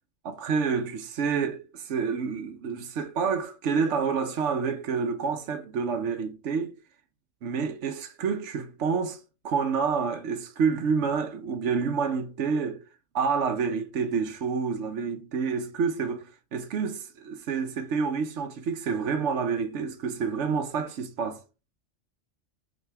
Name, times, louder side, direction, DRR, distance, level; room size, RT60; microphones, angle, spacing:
voice 1, 0.2-6.7 7.4-12.8 13.1-21.4, right 5 dB, 65° right, 1.1 m, -28 dB
6.4 x 3.1 x 4.7 m
omnidirectional pair, 1.3 m